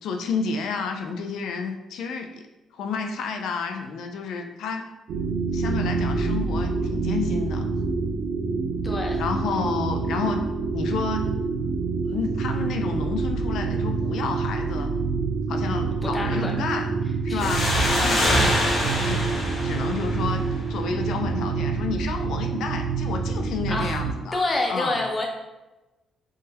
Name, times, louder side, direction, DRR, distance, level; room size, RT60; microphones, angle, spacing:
voice 1, 0.0-2.4 2.7-4.9 5.5-7.7 9.2-10.4 10.7-11.3 12.1-14.9 15.5-16.9 17.2-17.7 18.0-18.4 19.0-19.2 19.6-20.4 20.7-24.4 24.7-25.0, left 4 dB, 80° left, 5 dB, 0.4 m, -30 dB
sound 1, 5.1-24.1, right 4 dB, 75° right, 0.4 m, -27 dB
voice 2, 8.8-9.2 16.0-16.6 17.3-17.7 17.9-18.2 23.7-24.0 24.3-25.3, left 2 dB, 25° left, 1 dB, 0.6 m, -28 dB
sound 2, 17.4-20.8, left 1 dB, 55° left, 1.2 m, -24 dB
3.5 x 2.1 x 2.8 m, 1.0 s
cardioid pair, 90°, 0 cm